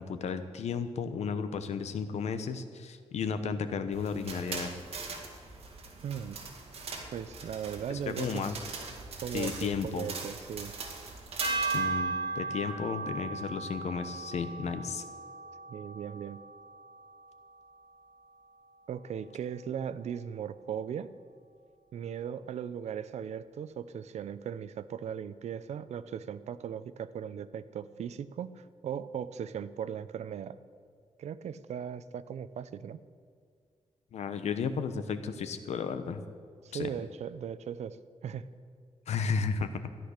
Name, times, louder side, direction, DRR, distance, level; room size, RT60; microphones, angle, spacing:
voice 1, 0.0-4.7 7.9-8.5 9.3-10.1 11.7-15.0 34.1-36.2 36.7-36.9 39.1-39.7, left 6 dB, 75° left, 10 dB, 1.0 m, -33 dB
sound 1, 3.9-11.8, right 4 dB, 60° right, 2.2 m, -41 dB
voice 2, 6.0-6.4 7.1-8.6 9.2-10.7 15.7-16.4 18.9-21.1 21.9-30.6 31.2-33.0 36.6-38.0 38.2-38.5, right 8 dB, 80° right, 15 dB, 0.6 m, -38 dB
sound 2, 11.4-17.7, right 3 dB, 45° right, 2.4 m, -36 dB
13.5 x 10.5 x 6.6 m, 2.1 s
wide cardioid pair, 155°, 11 cm